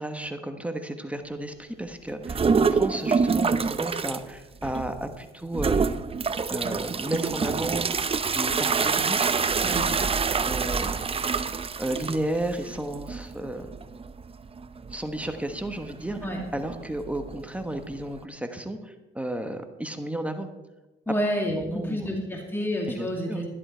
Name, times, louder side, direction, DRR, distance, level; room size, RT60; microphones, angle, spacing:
voice 1, 0.0-6.0 6.5-7.9 8.3-9.4 10.4-11.0 11.8-13.7 14.9-16.2 16.5-20.5 21.5-22.1 22.9-23.4, right 1 dB, 5° right, 6 dB, 1.2 m, -33 dB
sound 1, 2.2-4.2 4.6-5.1 5.5-18.2, right 5 dB, 30° right, 0.7 m, -27 dB
voice 2, 9.6-10.0 16.2-16.4 21.1-23.5, equal, 10° left, 0 dB, 2.4 m, -29 dB
12.5 x 11.0 x 4.4 m, 1.1 s
cardioid pair, 90°, 20 cm